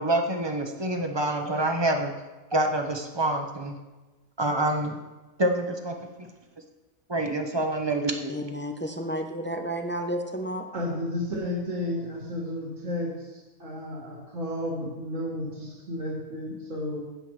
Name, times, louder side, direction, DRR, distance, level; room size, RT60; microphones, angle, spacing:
voice 1, 0.0-2.1 2.5-3.8 4.4-5.0 5.4-6.3 7.1-8.4, right 1 dB, 25° right, 4 dB, 0.7 m, -27 dB
voice 2, 8.3-10.7, equal, 15° left, 4 dB, 0.4 m, -31 dB
voice 3, 10.7-17.1, left 1 dB, 55° right, -7 dB, 2.4 m, -32 dB
15.5 x 7.7 x 3.3 m, 1.2 s
omnidirectional pair, 1.5 m